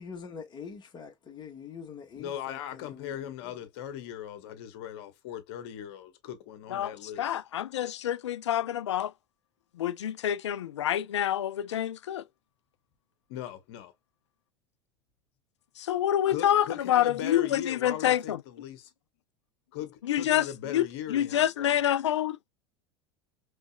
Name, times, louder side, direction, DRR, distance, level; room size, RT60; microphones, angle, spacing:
voice 1, 0.0-3.6, left 6 dB, 30° left, 1.5 m, -44 dB
voice 2, 2.2-7.4 13.3-13.9 16.2-18.9 19.7-21.8, left 10 dB, 60° left, 1.2 m, -39 dB
voice 3, 7.2-9.1 9.8-12.2 15.8-18.4 20.1-20.5 20.7-22.4, left 11 dB, 75° left, 0.4 m, -27 dB
5.2 x 3.3 x 2.2 m
figure-of-eight pair, 80°, 15 cm